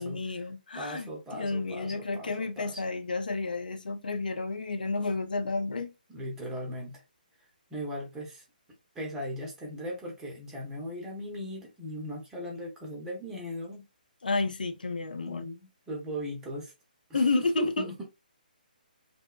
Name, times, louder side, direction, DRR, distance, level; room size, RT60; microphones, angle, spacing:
voice 1, 0.0-5.9 14.2-15.5 17.1-17.9, left 3 dB, 65° left, 0.5 m, -31 dB
voice 2, 0.8-2.8 6.1-7.0 7.7-8.4 8.9-13.8 15.3-16.7 17.1-18.0, equal, 10° right, 0.6 m, -38 dB
2.7 x 2.0 x 2.2 m
figure-of-eight pair, 135°, 5 cm